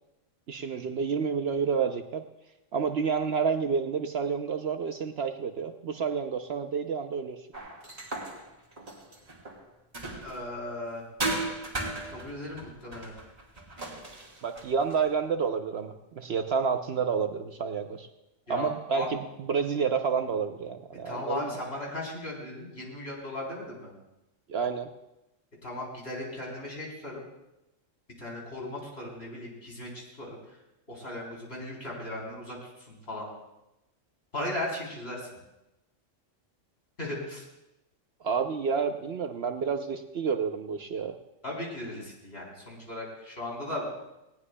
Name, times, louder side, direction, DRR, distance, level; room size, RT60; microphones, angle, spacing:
voice 1, 0.5-2.2 2.7-7.4 14.4-18.1 18.5-21.5 24.5-24.9 38.2-41.1, right 6 dB, 60° right, 6 dB, 0.9 m, -29 dB
sound 1, 7.5-10.6 11.2-15.1, right 2 dB, 35° right, 2.8 m, -37 dB
voice 2, 10.2-11.1 12.1-13.1 18.5-19.1 21.0-23.9 25.6-27.2 28.2-30.6 30.9-33.3 34.3-35.3 37.0-37.5 41.4-43.9, left 1 dB, 50° left, -3 dB, 4.0 m, -37 dB
19.5 x 18.0 x 2.2 m, 0.94 s
omnidirectional pair, 1.3 m